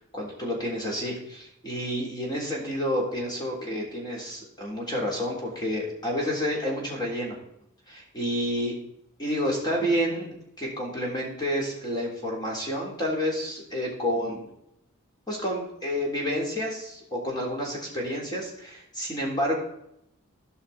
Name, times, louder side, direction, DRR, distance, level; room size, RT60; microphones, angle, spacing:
voice 1, 0.0-7.4 7.9-8.7 9.2-14.4 15.3-19.5, equal, 20° left, -2 dB, 3.7 m, -29 dB
16.0 x 5.7 x 4.3 m, 0.77 s
head